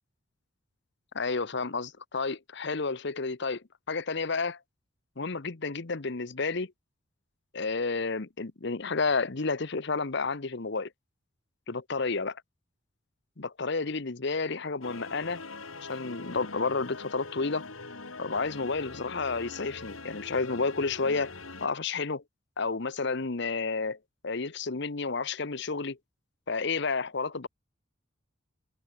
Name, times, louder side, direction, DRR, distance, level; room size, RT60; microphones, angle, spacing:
voice 1, 1.1-4.6 5.2-6.7 7.5-10.9 11.7-12.3 13.4-15.4 15.9-17.6 18.2-21.3 21.6-22.2 22.6-24.0 24.2-26.0 26.5-27.5, left 4 dB, 55° left, 1.0 m, -31 dB
sound 1, 14.8-21.7, left 3 dB, 80° left, 3.5 m, -43 dB
head